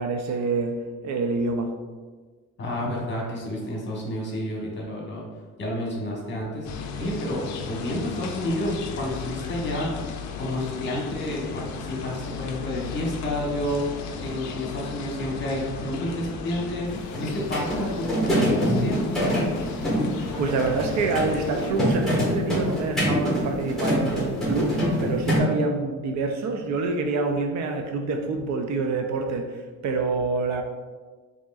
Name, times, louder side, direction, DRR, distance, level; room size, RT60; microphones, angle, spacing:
voice 1, 0.0-1.8 20.4-30.6, right 3 dB, 60° right, 4 dB, 0.5 m, -27 dB
voice 2, 2.6-5.2 5.6-9.9 10.4-19.5, left 1 dB, 35° left, -3 dB, 1.1 m, -30 dB
sound 1, 6.6-21.7, left 5 dB, 65° left, 0.4 m, -36 dB
sound 2, 16.9-25.4, equal, ahead, 1.4 m, -25 dB
4.7 x 2.9 x 2.4 m, 1.4 s
cardioid pair, 140°, 31 cm